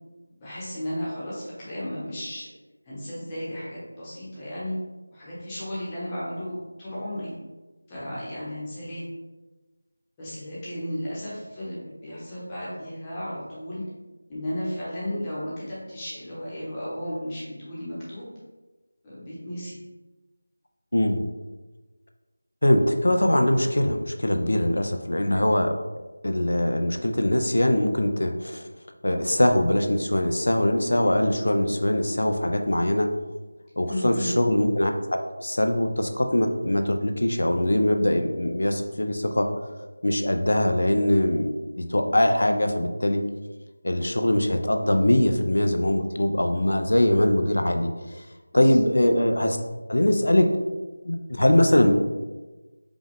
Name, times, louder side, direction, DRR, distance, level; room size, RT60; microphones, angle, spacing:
voice 1, 0.4-2.5 2.9-4.7 5.1-7.3 7.9-9.1 10.2-13.8 14.3-18.3 19.0-19.8 33.9-34.3 48.5-48.8, equal, 15° left, -9 dB, 0.9 m, -34 dB
voice 2, 22.6-25.7 26.2-28.6 29.0-33.1 33.8-39.5 40.0-43.2 43.8-47.9 48.5-49.6 49.9-50.5 51.0-51.9, left 1 dB, 80° left, 5 dB, 0.5 m, -22 dB
5.0 x 2.4 x 3.5 m, 1.2 s
figure-of-eight pair, 175°, 0 cm